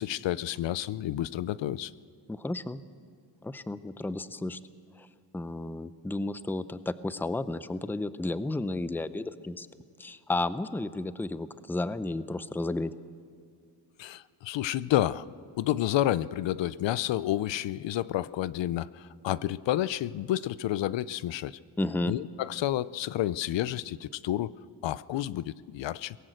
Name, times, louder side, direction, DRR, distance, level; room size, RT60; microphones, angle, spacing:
voice 1, 0.0-1.9 14.0-15.2 15.6-21.6 22.1-24.5 24.8-26.2, left 13 dB, 80° left, 19 dB, 0.6 m, -30 dB
voice 2, 2.3-2.8 3.4-4.6 5.0-5.1 5.3-9.7 10.0-12.9 21.8-22.1, left 2 dB, 5° left, 14 dB, 0.5 m, -32 dB
23.0 x 18.0 x 7.9 m, 2.2 s
cardioid pair, 130°, 44 cm